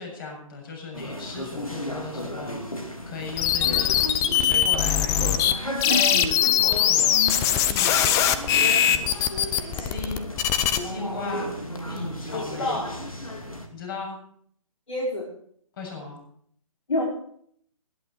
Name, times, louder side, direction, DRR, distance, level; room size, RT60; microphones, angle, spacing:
voice 1, 0.0-6.2 6.6-7.2 7.7-8.0 8.5-9.1 9.7-10.2 10.7-11.5 11.9-12.8 13.7-14.2 15.8-16.2, left 3 dB, 40° left, 1 dB, 7.5 m, -37 dB
sound 1, 0.9-13.7, equal, 90° left, 2.9 m, -34 dB
sound 2, 3.4-5.5 5.8-10.8, left 10 dB, 15° left, 0.8 m, -21 dB
voice 2, 12.3-13.0 14.9-15.3 16.9-17.0, left 1 dB, 65° left, -3 dB, 5.2 m, -28 dB
20.0 x 11.0 x 4.9 m, 0.62 s
figure-of-eight pair, 135°, 17 cm